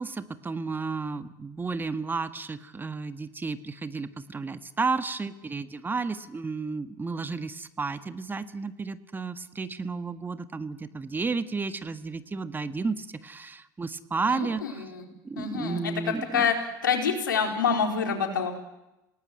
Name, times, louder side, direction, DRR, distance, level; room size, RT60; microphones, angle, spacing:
voice 1, 0.0-14.8 15.2-16.5, right 4 dB, 20° right, 10 dB, 1.6 m, -32 dB
voice 2, 15.4-15.9 16.3-16.6 16.8-18.5, left 6 dB, 85° left, 3 dB, 4.5 m, -26 dB
28.5 x 18.5 x 9.5 m, 0.98 s
hypercardioid pair, 80°, 10 cm